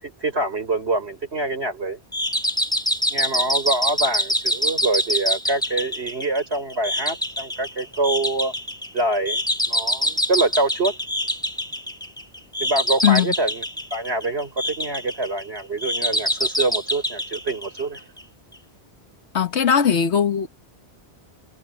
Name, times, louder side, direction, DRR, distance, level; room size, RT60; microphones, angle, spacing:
voice 1, 0.0-2.0 3.1-8.6 8.9-9.4 9.7-11.0 12.6-13.6 13.9-18.0, right 2 dB, 75° right, 5.3 m, -25 dB
sound 1, 2.1-18.2, equal, 5° left, 0.9 m, -25 dB
voice 2, 13.0-13.3 19.3-20.5, left 8 dB, 85° left, 1.5 m, -19 dB
omnidirectional pair, 1.1 m